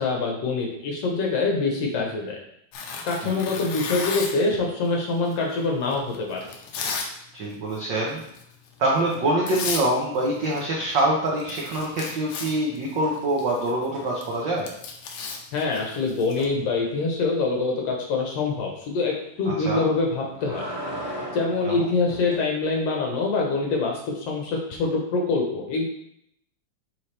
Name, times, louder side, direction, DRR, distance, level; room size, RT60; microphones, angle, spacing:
voice 1, 0.0-2.4 3.0-6.4 15.5-20.7 21.3-25.8, left 3 dB, 65° left, 0 dB, 1.8 m, -25 dB
Tearing, 2.7-4.5 5.3-7.1 7.4-7.8 8.2-8.4 9.1-9.2 9.5-9.9 10.2-10.7 10.9-11.0 11.3-16.4, left 5 dB, 80° left, 2.2 m, -34 dB
voice 2, 7.3-8.2 8.8-14.7 19.5-19.9 21.6-21.9, right 1 dB, 75° right, -3 dB, 1.0 m, -25 dB
sound 1, 11.4-12.1 12.4-14.8 16.4-16.6 19.9-22.5 24.7-24.8, right 1 dB, 20° right, 0.9 m, -38 dB
7.1 x 4.6 x 3.3 m, 0.73 s
omnidirectional pair, 3.4 m